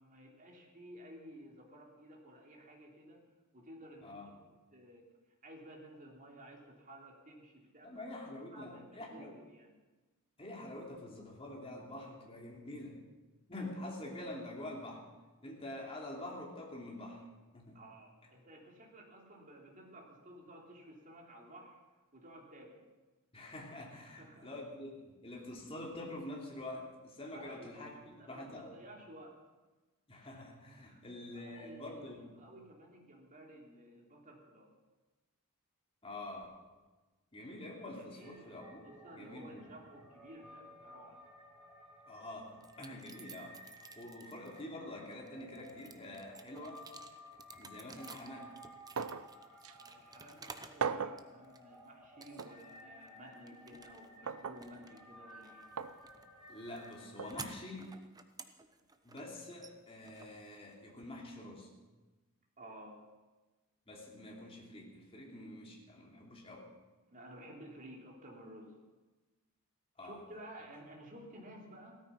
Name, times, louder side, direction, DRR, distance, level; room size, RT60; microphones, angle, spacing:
voice 1, 0.0-3.2 3.5-4.2 4.7-5.1 5.4-8.1 8.4-9.8 17.7-21.8 22.1-22.8 24.1-24.6 27.3-29.4 30.8-31.0 31.3-32.1 32.3-34.7 37.9-38.5 38.8-41.2 44.0-44.1 49.7-55.7 62.6-63.0 67.1-68.7 70.0-72.0, right 1 dB, 40° right, 0 dB, 3.1 m, -54 dB
voice 2, 7.8-9.3 10.4-13.0 13.5-15.1 15.4-17.2 17.5-17.8 23.3-28.7 30.1-32.3 36.0-36.5 37.3-38.8 39.1-39.6 42.1-46.8 47.6-48.5 56.5-57.9 59.0-61.7 63.9-66.7 70.0-70.2, left 1 dB, 25° left, -1 dB, 3.0 m, -46 dB
sound 1, 38.2-57.7, equal, ahead, 4.1 m, -56 dB
sound 2, 42.6-44.6 45.1-50.9 51.2-51.8 52.2-52.8 53.1-61.0, right 4 dB, 15° right, 0.8 m, -54 dB
sound 3, 49.0-49.3 49.6-49.7 50.8-51.2 52.4-52.5 54.3-54.6 55.8-56.0 57.2-57.3, right 6 dB, 75° right, 0.7 m, -37 dB
16.5 x 13.5 x 5.9 m, 1.2 s
head